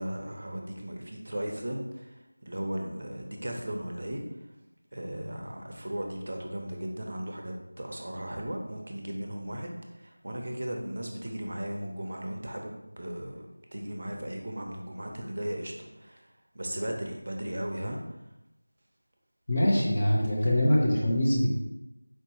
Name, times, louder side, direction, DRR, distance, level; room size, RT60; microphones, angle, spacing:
voice 1, 0.0-2.1 2.4-4.2 4.9-13.4 13.7-16.2 16.5-18.0, right 1 dB, 45° right, 2 dB, 0.6 m, -36 dB
voice 2, 19.5-21.5, left 1 dB, 25° left, -4 dB, 0.7 m, -23 dB
4.5 x 2.8 x 2.9 m, 0.94 s
figure-of-eight pair, 175°, 0 cm